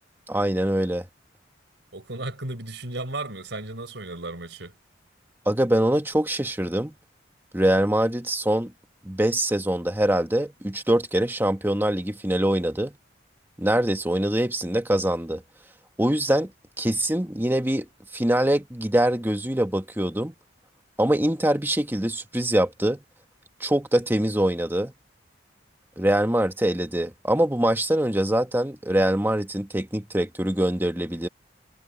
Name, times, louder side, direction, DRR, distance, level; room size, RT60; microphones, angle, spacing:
voice 1, 0.3-1.0 5.4-6.9 7.5-8.7 9.0-13.0 13.6-15.4 16.0-16.5 16.8-17.9 18.1-20.3 21.0-23.0 23.6-24.9 26.0-31.3, right 1 dB, 10° right, 1.4 m, -23 dB
voice 2, 1.9-4.8, right 2 dB, 70° right, 4.5 m, -34 dB
head